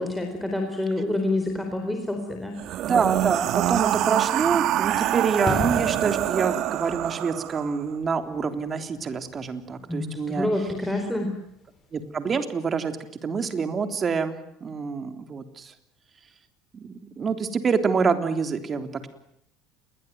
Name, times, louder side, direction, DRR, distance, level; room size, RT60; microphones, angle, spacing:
voice 1, 0.0-2.5 9.9-11.3, left 1 dB, ahead, 3 dB, 4.3 m, -27 dB
sound 1, 2.6-7.8, right 13 dB, 55° right, 1.6 m, -25 dB
voice 2, 2.9-11.0 11.9-13.0 13.2-15.7 16.7-19.1, right 5 dB, 30° right, 9 dB, 3.4 m, -27 dB
sound 2, 5.4-11.9 12.2-12.4, left 4 dB, 30° left, 6.9 m, -38 dB
28.5 x 22.0 x 9.5 m, 0.76 s
cardioid pair, 120°, 0 cm